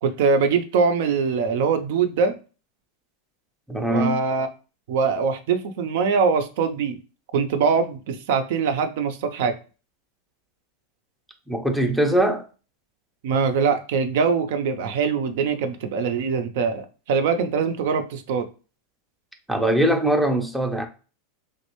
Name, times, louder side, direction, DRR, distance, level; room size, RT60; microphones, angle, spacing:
voice 1, 0.0-2.3 3.9-4.5 4.9-7.0 7.3-9.5 13.2-18.5, right 5 dB, 70° right, 0.6 m, -23 dB
voice 2, 3.7-4.2 11.5-12.5 19.5-20.9, right 1 dB, 5° right, 0.5 m, -21 dB
3.2 x 2.4 x 3.0 m
supercardioid pair, 135°, 0 cm